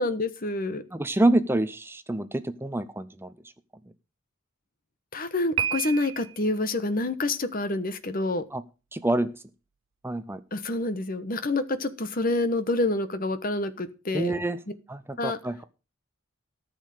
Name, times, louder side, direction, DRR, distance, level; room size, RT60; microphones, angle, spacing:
voice 1, 0.0-0.8 5.1-8.4 10.5-14.3 15.2-15.4, left 2 dB, 40° left, 12 dB, 1.2 m, -27 dB
voice 2, 0.9-3.3 8.5-8.6 8.9-9.4 10.0-10.4 14.1-14.6 14.9-15.6, right 1 dB, 10° right, 11 dB, 0.6 m, -27 dB
Piano, 5.6-6.5, right 10 dB, 65° right, 0.6 m, -30 dB
14.0 x 6.4 x 6.6 m, 0.33 s
head